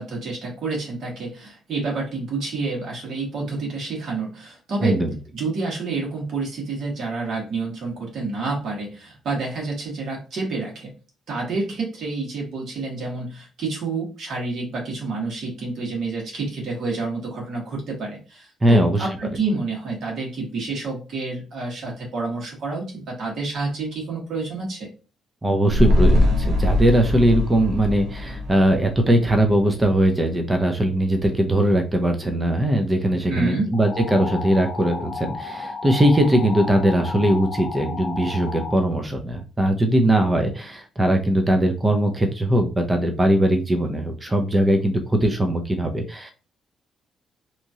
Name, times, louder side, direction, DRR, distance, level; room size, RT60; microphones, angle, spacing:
voice 1, 0.0-5.0 5.3-10.9 11.3-24.9 33.3-33.7, right 3 dB, 65° right, -1 dB, 1.4 m, -28 dB
voice 2, 4.8-5.1 18.6-19.1 25.4-46.3, right 1 dB, 20° right, 4 dB, 0.5 m, -20 dB
sound 1, 25.7-30.2 30.5-30.6, left 1 dB, 85° right, 0.7 m, -22 dB
sound 2, 33.7-38.7, left 4 dB, 50° left, 0.4 m, -33 dB
2.9 x 2.4 x 2.7 m, 0.34 s
cardioid pair, 90°, 0 cm